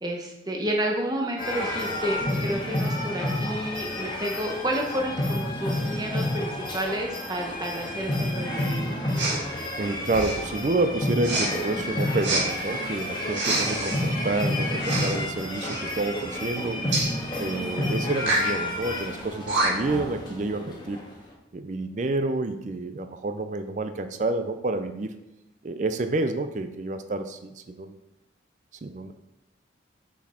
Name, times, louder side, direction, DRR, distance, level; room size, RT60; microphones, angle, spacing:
voice 1, 0.0-8.8, equal, 20° right, 1 dB, 0.8 m, -30 dB
sound 1, 1.4-21.1, left 1 dB, 25° left, 1.4 m, -30 dB
Respiratory sounds, 9.1-9.4 10.1-10.5 11.2-11.5 12.2-12.4 13.3-14.0 14.8-15.2 15.5-15.8 16.9-17.1 18.2-18.5 19.2-19.3 19.5-19.9, right 2 dB, 85° right, 1.9 m, -26 dB
voice 2, 9.8-16.9 17.4-21.0 21.5-25.1 25.6-28.0 28.8-29.1, right 2 dB, 40° right, 9 dB, 0.4 m, -29 dB
6.2 x 6.0 x 4.3 m, 0.91 s
head